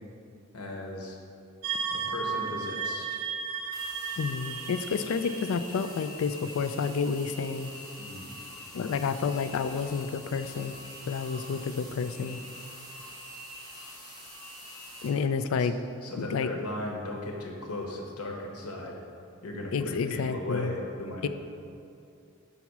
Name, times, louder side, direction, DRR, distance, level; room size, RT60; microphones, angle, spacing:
voice 1, 0.5-1.2 1.9-3.2 8.0-8.4 15.6-15.7 16.0-18.9 19.4-21.3, left 2 dB, 85° left, 0 dB, 1.0 m, -37 dB
sound 1, 1.6-6.0, right 5 dB, 85° right, 0.5 m, -34 dB
sound 2, 3.7-15.1, left 1 dB, ahead, 1.6 m, -45 dB
voice 2, 4.2-7.7 8.7-10.8 11.1-12.4 15.0-15.8 16.2-16.5 19.7-20.8 21.2-21.3, left 5 dB, 70° left, 11 dB, 0.3 m, -30 dB
5.8 x 4.1 x 6.0 m, 2.6 s
head